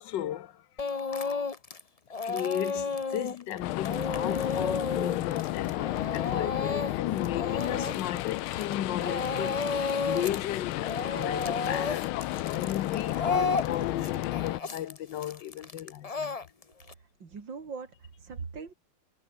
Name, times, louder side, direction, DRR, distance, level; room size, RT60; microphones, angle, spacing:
voice 1, 0.0-1.5 2.2-9.7 10.0-16.4, left 11 dB, 65° left, 1.6 m, -35 dB
Speech / Crying sobbing, 0.8-1.8 2.1-8.7 9.0-10.4 10.7-16.9, left 4 dB, 30° left, 0.7 m, -32 dB
sound 1, 3.6-14.6, left 17 dB, 85° left, 1.5 m, -32 dB
voice 2, 17.2-18.7, right 5 dB, 60° right, 3.5 m, -40 dB
omnidirectional pair, 2.3 m